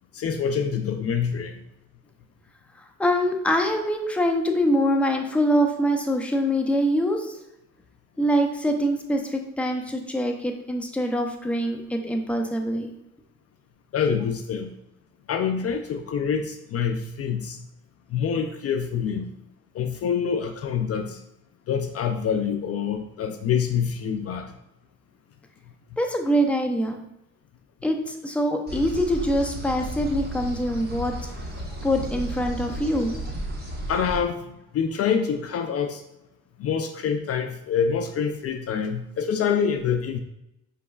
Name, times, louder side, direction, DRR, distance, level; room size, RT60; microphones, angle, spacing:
voice 1, 0.1-1.5 13.9-14.7 15.3-17.6 18.1-19.3 19.7-21.2 21.7-24.5 33.9-36.0 36.6-40.2, left 7 dB, 50° left, 6 dB, 0.4 m, -26 dB
voice 2, 3.0-7.4 8.2-12.9 26.0-27.0 27.8-31.1 31.8-33.2, equal, 5° left, 3 dB, 0.5 m, -24 dB
sound 1, 28.7-34.2, right 1 dB, 30° right, 1.3 m, -33 dB
5.8 x 3.0 x 2.3 m, 0.87 s
cardioid pair, 90°, 30 cm